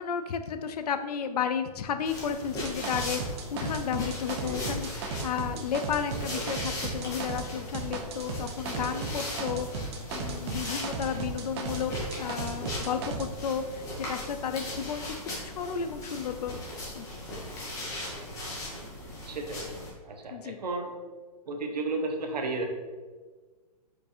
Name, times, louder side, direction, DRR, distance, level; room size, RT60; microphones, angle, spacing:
voice 1, 0.0-16.6 16.9-17.1 20.3-20.6, left 7 dB, 75° left, 9 dB, 0.4 m, -33 dB
sound 1, 2.0-19.9, left 1 dB, 15° left, 0.8 m, -39 dB
sound 2, 2.6-7.5 7.7-13.3, right 4 dB, 40° right, 0.5 m, -35 dB
voice 2, 4.4-4.9 6.3-6.6 8.8-9.1 19.2-19.6 20.0-20.9 21.5-22.7, right 3 dB, 85° right, 3 dB, 0.7 m, -34 dB
4.6 x 2.5 x 2.6 m, 1.4 s
hypercardioid pair, 140°, 21 cm